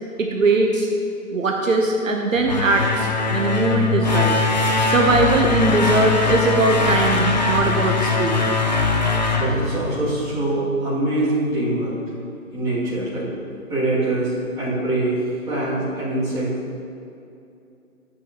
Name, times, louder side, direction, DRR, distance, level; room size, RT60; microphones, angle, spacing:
voice 1, 0.2-0.9 1.3-4.4 4.9-8.4, right 2 dB, 65° right, 2 dB, 1.1 m, -20 dB
sound 1, 2.4-10.3, left 3 dB, 30° left, 0.6 m, -21 dB
voice 2, 9.3-11.9 12.5-13.3 13.7-15.2 15.5-16.5, right 2 dB, 10° right, -12 dB, 2.5 m, -23 dB
12.5 x 8.7 x 3.0 m, 2.6 s
figure-of-eight pair, 155°, 43 cm